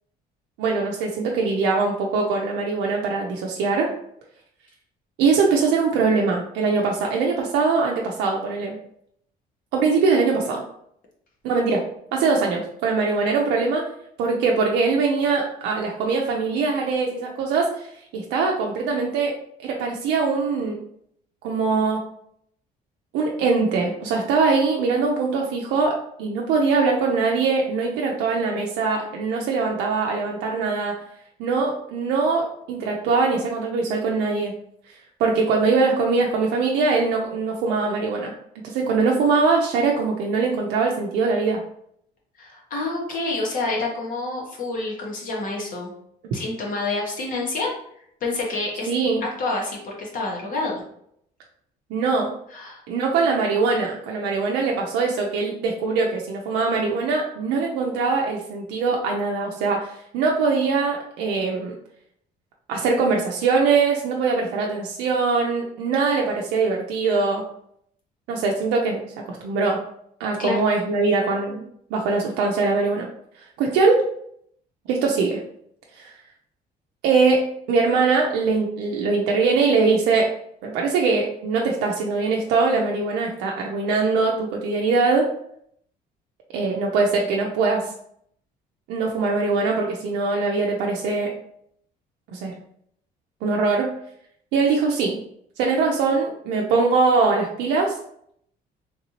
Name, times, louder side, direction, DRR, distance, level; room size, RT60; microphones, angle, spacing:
voice 1, 0.6-3.9 5.2-8.8 9.7-10.6 11.4-11.8 12.1-13.9 14.2-19.3 19.6-20.8 21.4-22.0 23.1-30.9 31.4-34.5 35.2-38.3 38.6-41.6 48.9-49.2 51.9-52.4 52.9-61.7 62.7-67.4 68.3-69.0 69.3-69.8 70.2-71.7 71.9-73.1 73.4-74.1 74.9-75.4 76.0-76.1 77.0-80.3 80.6-85.3 86.5-87.9 88.9-91.3 92.3-92.5 93.4-94.0 94.5-95.2 95.6-98.0, right 4 dB, 90° right, -1 dB, 0.5 m, -22 dB
voice 2, 42.4-45.9 46.3-47.7 48.2-48.9 49.2-50.8 52.5-52.8 70.4-70.6, left 2 dB, 55° left, -1 dB, 1.2 m, -28 dB
3.2 x 2.7 x 2.9 m, 0.69 s
cardioid pair, 110°, 17 cm